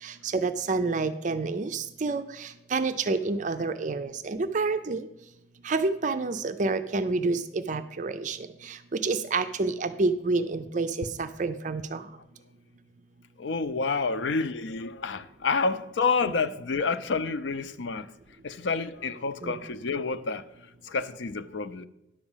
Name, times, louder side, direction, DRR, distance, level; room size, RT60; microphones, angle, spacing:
voice 1, 0.0-5.1 5.6-12.1 19.4-19.6, right 3 dB, 45° right, 0.4 m, -29 dB
voice 2, 13.4-18.1 18.4-20.5 20.8-21.9, left 4 dB, 90° left, 0.6 m, -29 dB
10.5 x 4.9 x 7.2 m
head